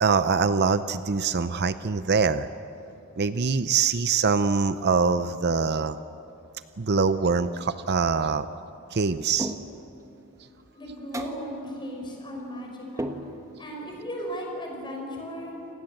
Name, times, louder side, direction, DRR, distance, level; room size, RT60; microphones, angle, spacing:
voice 1, 0.0-2.5 3.2-6.0 6.8-8.5 8.9-9.5, right 5 dB, 50° right, 12 dB, 0.6 m, -24 dB
sound 1, 9.4-10.0 11.1-11.6 13.0-13.7, right 1 dB, 15° right, 1.3 m, -34 dB
voice 2, 10.7-13.1 13.6-15.8, equal, 20° left, 0 dB, 5.8 m, -36 dB
28.5 x 19.5 x 7.9 m, 2.9 s
head